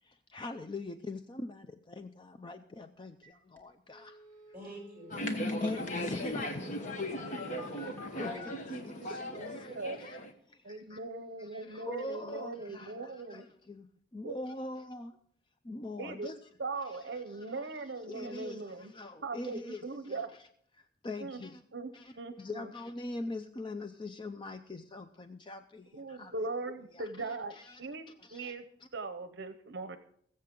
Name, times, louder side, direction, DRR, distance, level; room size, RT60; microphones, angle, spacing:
voice 1, 0.0-4.2 5.3-7.0 7.7-7.9 8.2-10.2 10.5-11.0 11.4-13.9 14.1-15.1 15.6-16.4 16.8-17.7 18.1-20.4 20.8-21.6 21.9-26.3 26.9-27.8 28.2-28.5, left 2 dB, 25° left, 8 dB, 0.5 m, -43 dB
sound 1, 3.2-3.3 3.6-3.7 3.9-8.5, left 1 dB, 10° left, 2.5 m, -50 dB
voice 2, 4.5-5.5 7.0-8.9, equal, 10° right, -1 dB, 6.3 m, -49 dB
sound 2, 5.1-10.3, left 1 dB, 45° left, 1.1 m, -37 dB
voice 3, 8.9-10.0 10.6-13.5 14.2-14.3 16.0-16.3 16.6-18.9 19.2-20.3 21.2-21.4 21.7-22.7 25.9-27.5 27.8-28.1 28.3-28.6 28.9-30.0, right 3 dB, 65° right, 9 dB, 0.7 m, -40 dB
21.5 x 7.6 x 3.8 m, 0.64 s
head